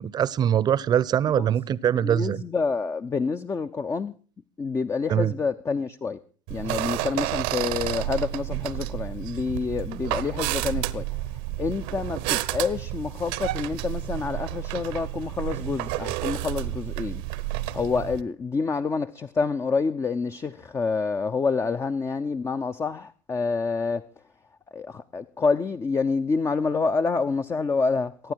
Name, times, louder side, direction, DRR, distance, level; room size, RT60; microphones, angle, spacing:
voice 1, 0.0-2.4 5.1-5.3, right 9 dB, 40° right, 0.8 m, -23 dB
voice 2, 2.0-4.1 4.6-6.2 6.5-11.1 11.6-17.2 17.7-24.0 24.7-28.3, left 4 dB, 25° left, 0.7 m, -27 dB
sound 1, 6.5-18.2, right 16 dB, 70° right, 0.9 m, -30 dB
23.5 x 9.6 x 4.6 m
hypercardioid pair, 70°, 11 cm